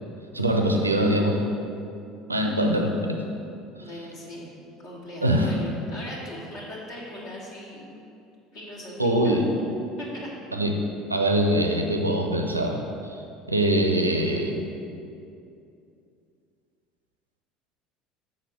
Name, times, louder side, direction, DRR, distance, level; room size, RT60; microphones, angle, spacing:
voice 1, 0.3-1.4 2.3-3.2 5.2-5.5 9.0-9.5 10.5-10.8 11.1-12.8 13.1-13.2 13.5-14.7, right 1 dB, 85° right, 3 dB, 0.5 m, -23 dB
voice 2, 3.8-4.5 4.8-8.0 8.5-9.0 9.2-9.5 10.0-10.3, left 1 dB, 55° left, -5 dB, 1.4 m, -39 dB
6.5 x 3.9 x 6.0 m, 2.6 s
figure-of-eight pair, 65°, 0 cm